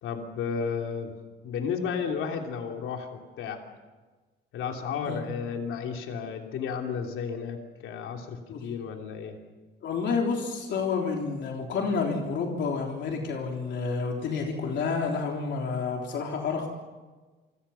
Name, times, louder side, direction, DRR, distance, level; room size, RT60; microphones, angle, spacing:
voice 1, 0.0-1.1 1.4-3.6 4.5-9.4, left 6 dB, 80° left, 3 dB, 3.2 m, -33 dB
voice 2, 9.8-16.7, left 5 dB, 60° left, 1 dB, 3.5 m, -29 dB
27.5 x 26.0 x 5.8 m, 1.3 s
cardioid pair, 150°, 20 cm